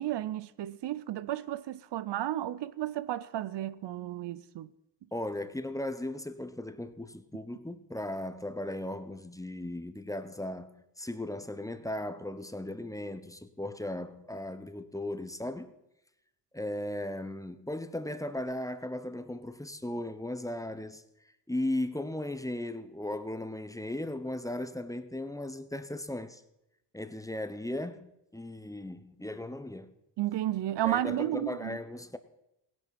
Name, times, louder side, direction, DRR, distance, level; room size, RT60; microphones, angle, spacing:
voice 1, 0.0-4.7 30.2-31.8, right 13 dB, 75° right, 0.6 m, -33 dB
voice 2, 5.1-15.7 16.5-21.0 21.5-26.4 26.9-29.9 30.8-32.2, left 1 dB, 10° left, 0.9 m, -37 dB
17.5 x 10.5 x 4.2 m
cardioid pair, 70°, 42 cm